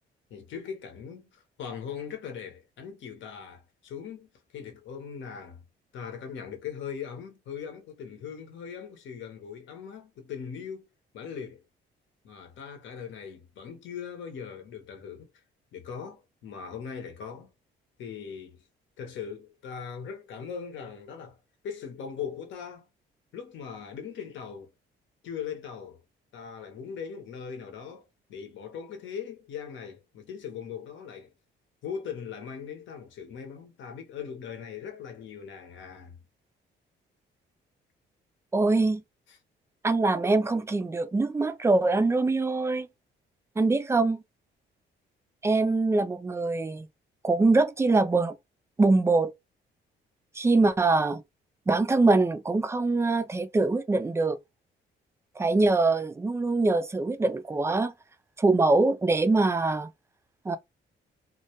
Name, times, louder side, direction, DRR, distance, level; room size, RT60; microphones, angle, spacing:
voice 1, 0.3-5.6 5.9-10.9 11.1-11.6 12.2-15.3 15.7-17.5 18.0-18.7 19.0-21.4 21.6-22.9 23.3-24.7 25.2-26.0 26.3-31.3 31.8-36.2 39.3-39.4, left 7 dB, 75° left, 0.8 m, -40 dB
voice 2, 38.5-39.0 39.8-42.9 43.6-44.2 45.4-46.9 47.2-48.4 48.8-49.3 50.4-51.2 51.7-54.4 55.4-57.9 58.4-59.9 60.5-60.6, right 3 dB, 15° right, 0.3 m, -23 dB
2.2 x 2.1 x 2.8 m
cardioid pair, 90°, 20 cm